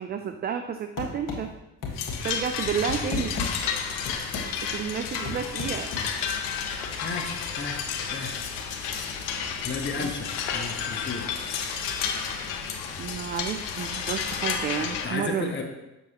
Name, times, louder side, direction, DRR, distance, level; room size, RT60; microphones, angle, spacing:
voice 1, 0.0-1.5 2.2-3.4 4.6-5.9 10.0-10.1 13.0-15.5, right 7 dB, 25° right, 7 dB, 0.3 m, -31 dB
sound 1, 1.0-1.4 1.8-2.2 2.6-3.5 4.1-4.5 5.2-6.1, left 4 dB, 40° left, 1.6 m, -32 dB
sound 2, 1.9-15.1, left 7 dB, 70° left, 0.9 m, -31 dB
voice 2, 7.0-7.8 8.1-8.3 9.6-11.3 15.0-15.6, left 4 dB, 25° left, 2 dB, 1.0 m, -33 dB
6.6 x 6.1 x 2.9 m, 0.97 s
hypercardioid pair, 50°, 46 cm